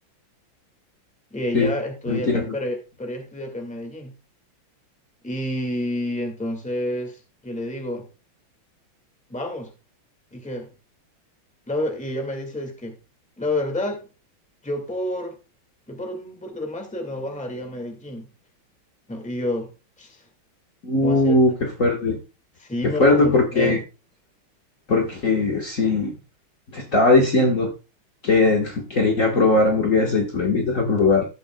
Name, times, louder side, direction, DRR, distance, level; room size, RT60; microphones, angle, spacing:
voice 1, 1.3-4.1 5.2-8.1 9.3-9.7 10.3-10.7 11.7-13.0 13.4-14.1 14.6-15.3 15.9-18.3 19.1-19.7 20.0-20.2 21.0-21.3 22.6-23.8, left 1 dB, 5° left, 3 dB, 1.8 m, -29 dB
voice 2, 2.1-2.5 20.8-22.2 23.0-23.8 24.9-26.1 26.7-27.7 28.2-31.2, left 2 dB, 40° left, 0 dB, 1.6 m, -19 dB
17.0 x 7.0 x 2.3 m, 0.30 s
omnidirectional pair, 2.3 m